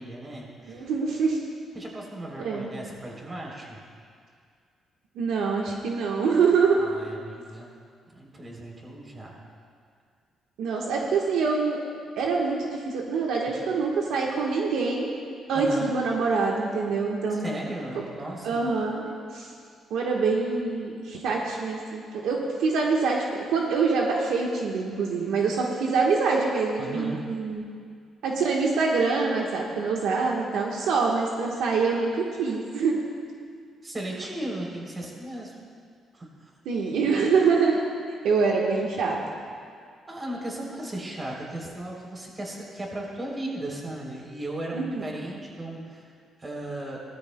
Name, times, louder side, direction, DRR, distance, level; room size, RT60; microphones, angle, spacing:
voice 1, 0.0-0.9 1.7-3.8 6.8-7.7 8.1-9.4 15.5-15.9 17.3-18.6 26.8-27.2 33.8-35.5 36.1-36.3 40.1-46.1 46.4-47.0, right 1 dB, 30° right, -1 dB, 3.3 m, -36 dB
voice 2, 0.7-1.4 2.4-2.7 5.1-6.8 10.6-11.8 12.2-15.2 15.5-17.5 18.4-19.0 19.3-19.5 19.9-27.6 28.2-32.9 36.6-37.8 38.2-39.2 44.7-45.0, right 4 dB, 85° right, -2 dB, 1.3 m, -25 dB
18.0 x 13.5 x 2.2 m, 2.2 s
cardioid pair, 90°, 0 cm